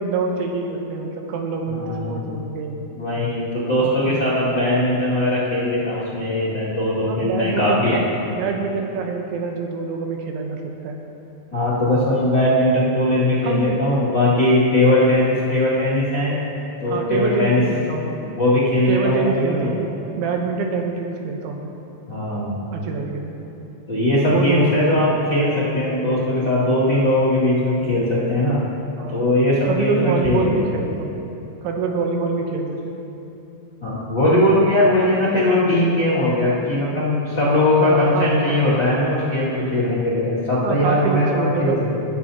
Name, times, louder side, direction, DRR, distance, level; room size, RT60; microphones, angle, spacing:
voice 1, 0.0-2.9 3.8-4.3 7.1-8.0 8.3-11.0 13.4-13.8 16.9-18.2 18.9-21.7 22.7-23.4 24.3-25.0 29.0-29.2 29.7-31.1 31.6-33.0 37.8-38.6 40.6-41.8, right 4 dB, 80° right, 2 dB, 3.1 m, -25 dB
voice 2, 1.7-2.2 2.9-8.0 11.5-16.4 16.8-17.6 18.2-19.7 22.1-22.6 23.9-28.6 29.1-30.7 33.8-41.7, left 1 dB, 40° left, -11 dB, 1.6 m, -19 dB
21.0 x 10.5 x 2.8 m, 2.9 s
omnidirectional pair, 5.6 m